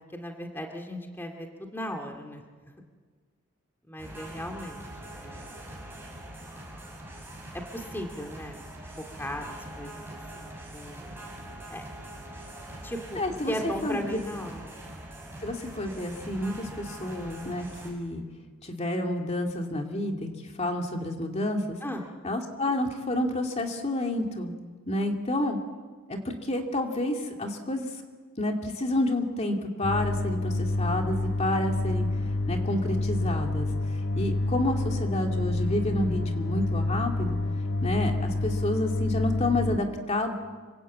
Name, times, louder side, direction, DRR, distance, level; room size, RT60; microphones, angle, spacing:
voice 1, 0.1-2.4 3.9-4.8 5.2-5.5 7.5-8.6 9.0-11.1 11.7-11.8 12.8-14.9 21.8-22.1, equal, 10° left, 3 dB, 2.3 m, -37 dB
sound 1, 4.0-17.9, right 1 dB, 10° right, 6.9 m, -43 dB
voice 2, 13.1-14.2 15.4-18.2 18.6-20.3 20.6-21.8 22.2-24.5 24.9-25.6 26.1-27.9 28.4-32.1 32.5-33.7 34.1-37.4 37.8-40.3, left 1 dB, 30° left, 2 dB, 2.5 m, -29 dB
sound 2, 29.8-39.8, left 2 dB, 75° left, 2.3 m, -28 dB
26.5 x 25.0 x 8.4 m, 1.5 s
head